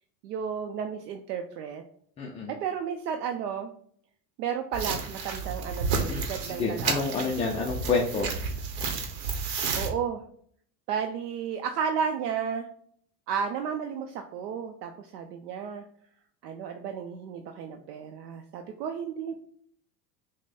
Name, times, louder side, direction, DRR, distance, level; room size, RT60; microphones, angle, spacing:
voice 1, 0.2-1.8 2.6-3.7 4.4-7.3 9.8-10.2 10.9-12.7 13.3-15.8 16.4-19.4, right 7 dB, 70° right, 5 dB, 0.6 m, -33 dB
voice 2, 2.2-2.5 6.1-8.3, left 4 dB, 15° left, -2 dB, 0.3 m, -29 dB
sound 1, 4.7-9.9, right 5 dB, 55° right, 1.0 m, -31 dB
5.9 x 2.2 x 4.1 m, 0.62 s
hypercardioid pair, 80°, 50 cm